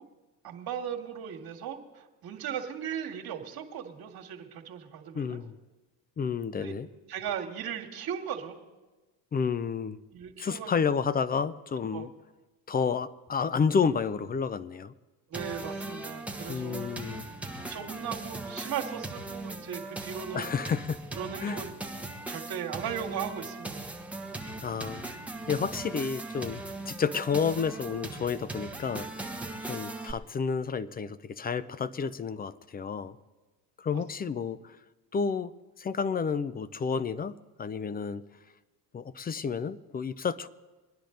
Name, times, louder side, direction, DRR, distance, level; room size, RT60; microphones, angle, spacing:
voice 1, 0.4-5.4 6.6-6.7 7.1-8.6 10.1-10.8 11.9-12.1 15.3-16.9 17.6-20.5 21.1-21.7 22.3-23.8, right 8 dB, 45° right, 2 dB, 2.1 m, -37 dB
voice 2, 5.1-5.6 6.2-6.9 9.3-10.0 10.4-12.1 12.7-14.9 16.5-17.3 20.3-21.0 21.4-21.6 24.6-29.4 29.7-33.2 33.8-34.8 35.1-35.5 35.8-37.3 37.6-38.2 38.9-40.5, left 6 dB, 20° left, 17 dB, 0.4 m, -30 dB
sound 1, 15.3-30.1, right 2 dB, 5° right, 1.3 m, -39 dB
24.0 x 10.0 x 3.9 m, 1.2 s
hypercardioid pair, 80°, 50 cm